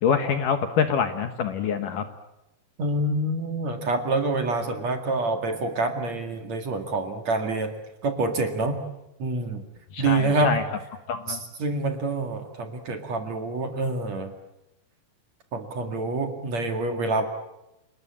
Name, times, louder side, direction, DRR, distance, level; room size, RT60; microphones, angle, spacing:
voice 1, 0.0-2.1 9.9-10.6 11.1-11.4, left 7 dB, 65° left, 8 dB, 2.2 m, -25 dB
voice 2, 2.8-7.7 8.0-8.8 9.2-9.6 10.0-10.6 11.3-14.3 15.5-17.3, right 2 dB, 50° right, 5 dB, 2.6 m, -27 dB
29.5 x 20.0 x 8.6 m, 0.92 s
omnidirectional pair, 5.1 m